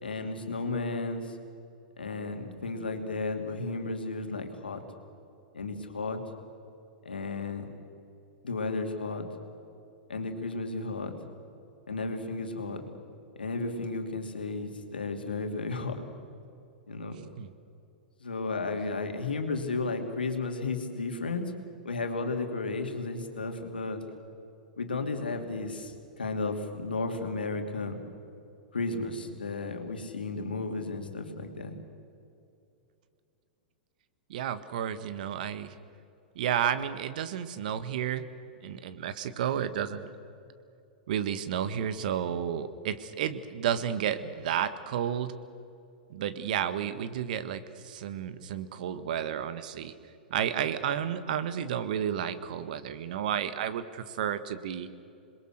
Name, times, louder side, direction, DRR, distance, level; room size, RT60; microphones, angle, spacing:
voice 1, 0.0-1.4 2.0-4.8 5.5-6.2 7.0-7.7 8.4-9.3 10.1-11.1 11.9-12.8 13.4-16.0 16.9-17.2 18.2-21.5 21.8-24.0 24.8-28.0 28.7-31.8, left 3 dB, 80° left, 4 dB, 2.8 m, -33 dB
voice 2, 34.3-35.7 36.3-38.2 38.6-40.1 41.1-45.3 46.1-49.9 50.3-54.9, right 9 dB, 60° right, 12 dB, 1.5 m, -31 dB
27.5 x 21.5 x 6.6 m, 2.6 s
figure-of-eight pair, 100°, 5 cm